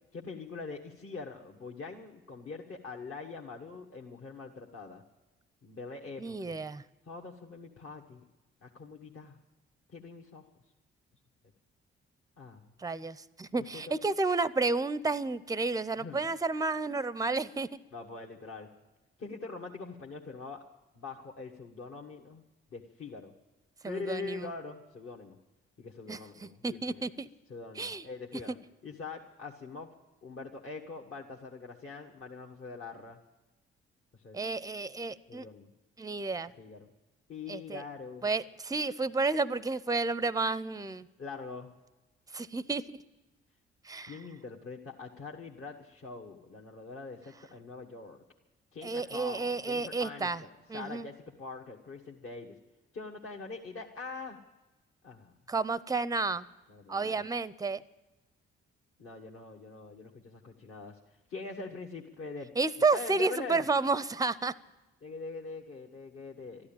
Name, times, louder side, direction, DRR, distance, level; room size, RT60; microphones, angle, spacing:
voice 1, 0.1-5.0 5.6-6.6 7.1-8.2 8.6-9.4 9.9-10.4 12.4-12.7 13.6-13.9 16.0-16.3 17.9-18.7 19.2-20.6 20.9-22.4 22.7-23.3 23.8-25.4 25.8-27.1 27.5-28.6 28.8-29.9 30.2-33.2 34.2-34.4 35.3-35.7 36.6-36.9 37.3-38.3 41.2-41.7 44.0-48.2 48.7-52.6 52.9-54.4 55.0-55.3 56.7-57.2 59.0-61.0 61.3-62.5 62.8-63.6 65.0-66.7, left 4 dB, 45° left, -2 dB, 1.6 m, -43 dB
voice 2, 6.2-6.8 12.8-17.8 23.8-24.5 26.1-27.3 27.8-28.1 34.3-35.5 36.0-36.5 37.5-37.8 38.2-41.1 42.3-43.0 43.8-44.2 48.8-50.4 50.7-51.1 55.5-56.4 56.9-57.8 62.6-64.5, right 3 dB, 10° right, 18 dB, 0.6 m, -31 dB
13.5 x 11.5 x 8.9 m, 1.1 s
hypercardioid pair, 45°, 29 cm